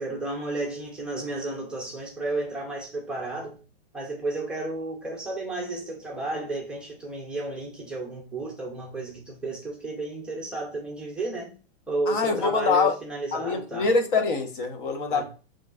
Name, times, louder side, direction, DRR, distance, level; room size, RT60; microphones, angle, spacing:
voice 1, 0.0-3.6 3.9-11.6 11.9-13.9 15.1-15.2, right 2 dB, 5° right, 0.5 m, -32 dB
voice 2, 12.1-12.9 13.3-15.2, left 4 dB, 60° left, 1.1 m, -24 dB
6.8 x 3.1 x 2.4 m
supercardioid pair, 170°, 30 cm